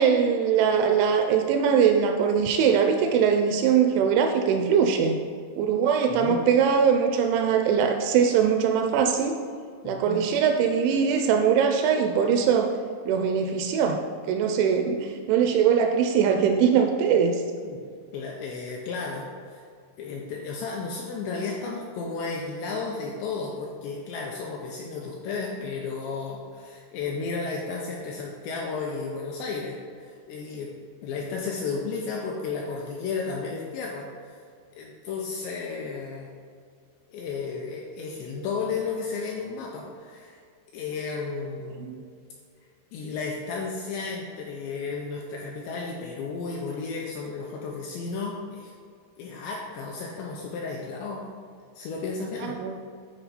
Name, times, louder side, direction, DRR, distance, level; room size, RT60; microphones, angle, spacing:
voice 1, 0.0-5.2 5.6-9.4 9.9-12.7 13.1-17.4 41.8-42.0 52.4-52.8, right 7 dB, 85° right, 5 dB, 2.7 m, -22 dB
voice 2, 6.1-6.4 9.8-10.2 17.6-17.8 18.1-19.6 20.0-30.7 31.0-34.4 34.8-36.3 37.1-40.4 40.7-42.1 42.9-48.7 49.2-51.3 51.8-52.6, left 4 dB, 85° left, -1 dB, 2.5 m, -33 dB
9.9 x 4.5 x 4.1 m, 2.1 s
omnidirectional pair, 5.6 m